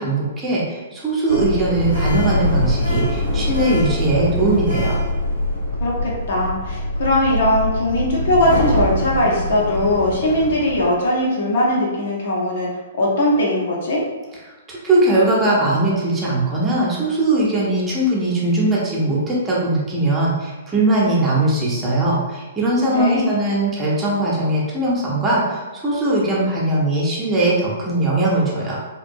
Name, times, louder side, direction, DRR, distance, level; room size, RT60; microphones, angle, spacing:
voice 1, 0.0-5.0 14.7-28.8, right 2 dB, 15° right, -5 dB, 0.7 m, -20 dB
Sliding door, 1.3-10.8, left 1 dB, 90° left, 1.2 m, -23 dB
voice 2, 5.8-12.7 13.0-14.0 22.9-23.4, left 1 dB, 55° left, -4 dB, 0.8 m, -20 dB
2.9 x 2.5 x 2.6 m, 1.2 s
figure-of-eight pair, 115°, 0 cm